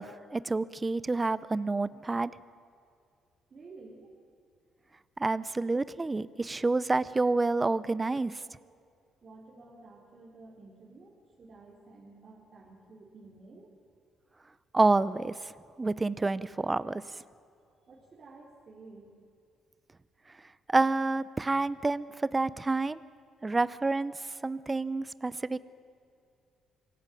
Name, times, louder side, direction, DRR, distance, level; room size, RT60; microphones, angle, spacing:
voice 1, 0.0-2.3 5.2-8.4 14.7-15.5 15.8-17.0 20.7-23.0 23.4-25.6, right 3 dB, 15° right, 17 dB, 0.6 m, -28 dB
voice 2, 3.5-4.1 9.2-13.7 17.9-19.1, right 3 dB, 40° right, -3 dB, 3.3 m, -52 dB
25.5 x 17.0 x 9.1 m, 2.5 s
cardioid pair, 130°, 0 cm